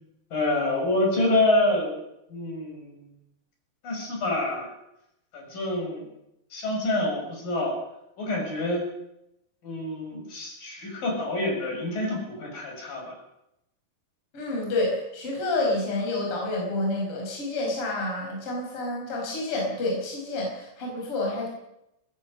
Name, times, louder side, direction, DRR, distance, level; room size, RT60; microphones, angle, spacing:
voice 1, 0.3-2.0 2.3-3.0 3.8-4.7 5.3-6.1 6.5-7.7 8.2-8.8 9.6-13.2, left 2 dB, 50° left, 0 dB, 7.8 m, -27 dB
voice 2, 14.3-21.5, left 2 dB, 30° left, -1 dB, 6.0 m, -29 dB
22.5 x 19.5 x 6.6 m, 0.84 s
omnidirectional pair, 5.3 m